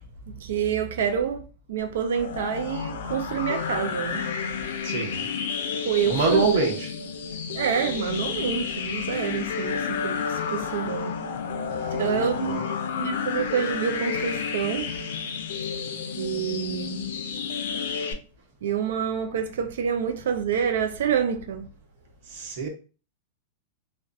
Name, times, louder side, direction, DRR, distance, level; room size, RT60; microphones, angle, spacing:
voice 1, 0.4-1.4 1.7-4.2 5.8-6.6 7.5-11.1 11.9-14.9 16.2-17.0 18.6-21.7, right 8 dB, 80° right, 0.4 m, -27 dB
sound 1, 2.1-18.1, left 6 dB, 75° left, 0.4 m, -31 dB
voice 2, 4.8-5.2 6.0-6.9 11.7-12.5 22.3-22.7, right 3 dB, 65° right, 0.9 m, -26 dB
2.3 x 2.2 x 2.5 m
supercardioid pair, 145°, 0 cm